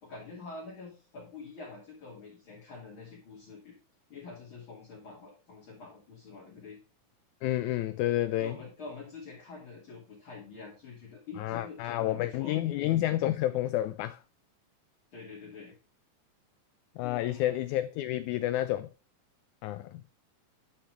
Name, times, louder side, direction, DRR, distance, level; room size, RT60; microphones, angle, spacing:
voice 1, 0.0-3.7 4.1-6.8 8.4-12.5 15.1-15.8 17.0-17.6, left 4 dB, 40° left, 3.1 m, -46 dB
voice 2, 7.4-8.6 11.4-14.2 17.0-18.9 19.6-20.0, left 14 dB, 80° left, 1.8 m, -30 dB
11.5 x 5.8 x 3.4 m
omnidirectional pair, 3.7 m